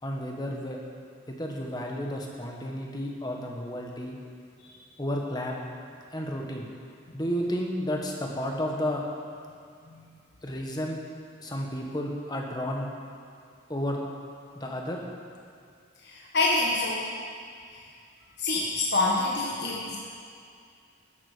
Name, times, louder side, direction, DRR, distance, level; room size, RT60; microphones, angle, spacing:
voice 1, 0.0-0.8 1.3-4.2 5.0-5.6 6.1-6.8 7.1-9.1 10.4-11.0 11.4-12.9 13.7-14.0 14.5-15.0, equal, 20° left, 0 dB, 1.4 m, -32 dB
voice 2, 16.0-17.1 17.7-17.8 18.4-20.0, left 2 dB, 55° left, -4 dB, 1.3 m, -27 dB
13.0 x 11.5 x 5.1 m, 2.3 s
head